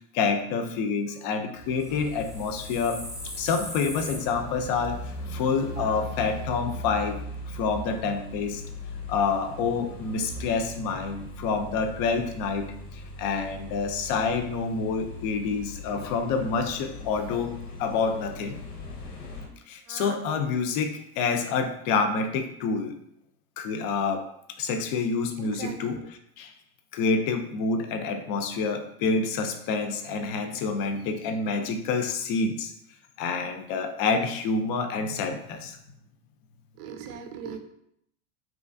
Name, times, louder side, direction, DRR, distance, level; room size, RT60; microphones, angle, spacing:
voice 1, 0.1-3.0 3.3-8.6 9.1-18.6 19.7-23.0 23.6-24.3 24.6-26.0 26.4-26.5 26.9-32.7 33.2-35.8, left 4 dB, 50° left, 6 dB, 0.5 m, -28 dB
sound 1, 1.6-6.6, right 1 dB, 5° left, 0.6 m, -42 dB
sound 2, 1.9-19.5, left 1 dB, 90° left, 0.8 m, -39 dB
voice 2, 25.4-26.0 36.8-37.6, right 7 dB, 65° right, 6 dB, 0.6 m, -40 dB
3.0 x 2.4 x 2.5 m, 0.74 s
hypercardioid pair, 95°, 45 cm